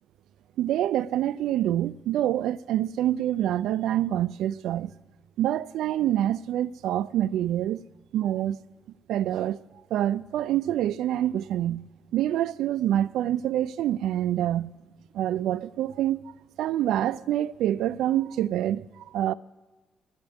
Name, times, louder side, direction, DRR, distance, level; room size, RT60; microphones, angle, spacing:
voice 1, 0.6-4.9 5.4-7.8 8.1-8.6 9.1-9.6 9.9-14.8 15.1-16.3 16.6-19.3, right 12 dB, 85° right, 0.4 m, -26 dB
24.0 x 10.5 x 3.5 m
cardioid pair, 90°, 0 cm